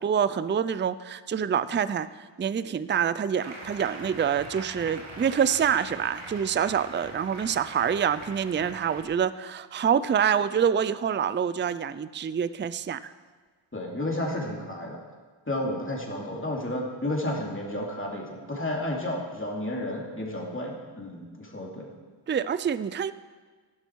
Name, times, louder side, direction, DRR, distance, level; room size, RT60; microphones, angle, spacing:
voice 1, 0.0-2.1 2.4-13.1 22.3-23.1, right 8 dB, 25° right, 15 dB, 0.3 m, -26 dB
Applause, 3.4-9.0, right 2 dB, 90° right, 2.1 m, -43 dB
voice 2, 13.7-15.0 15.5-21.9, left 1 dB, 25° left, -2 dB, 2.7 m, -32 dB
15.0 x 12.5 x 4.6 m, 1.4 s
wide cardioid pair, 110°, 47 cm